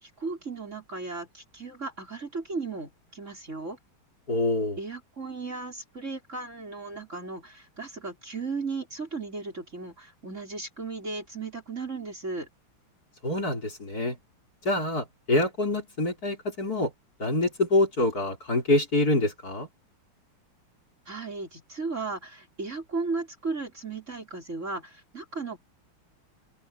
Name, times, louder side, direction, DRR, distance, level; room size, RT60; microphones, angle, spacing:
voice 1, 0.0-3.8 4.8-12.5 21.1-25.6, right 3 dB, 35° right, 6.1 m, -35 dB
voice 2, 4.3-4.8 13.2-14.1 14.6-16.9 17.2-19.7, left 2 dB, 45° left, 5.0 m, -26 dB
open air
omnidirectional pair, 2.3 m